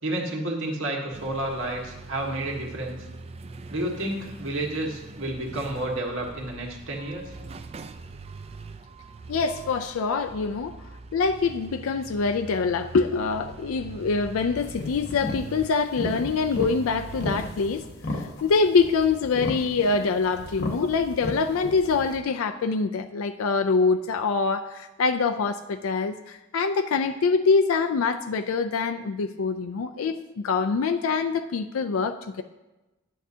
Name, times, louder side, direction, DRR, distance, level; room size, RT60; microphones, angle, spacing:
voice 1, 0.0-3.0 3.7-7.3, right 1 dB, 65° right, -1 dB, 1.7 m, -30 dB
sound 1, 1.1-17.5, right 3 dB, 30° right, 0.4 m, -43 dB
voice 2, 9.3-10.8 11.1-17.8 18.1-30.2 30.4-32.4, left 4 dB, 80° left, 7 dB, 0.4 m, -25 dB
sound 2, 14.6-22.2, left 2 dB, 50° left, 0.9 m, -35 dB
11.0 x 8.3 x 2.8 m, 1.0 s
head